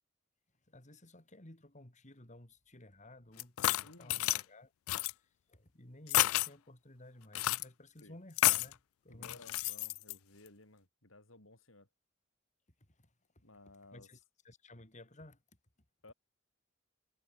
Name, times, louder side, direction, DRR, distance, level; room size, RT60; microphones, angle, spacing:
voice 1, 0.7-4.7 5.1-9.5 12.9-13.1 13.9-15.4, left 1 dB, 35° left, 3.6 m, -56 dB
sound 1, 3.4-4.4 4.9-5.1 6.1-6.5 7.3-7.6 8.4-8.7 9.2-10.1, left 17 dB, 90° left, 0.3 m, -30 dB
voice 2, 3.8-4.4 8.0-8.2 9.1-11.9 13.4-14.1 16.0-16.1, left 2 dB, 70° left, 6.6 m, -57 dB
head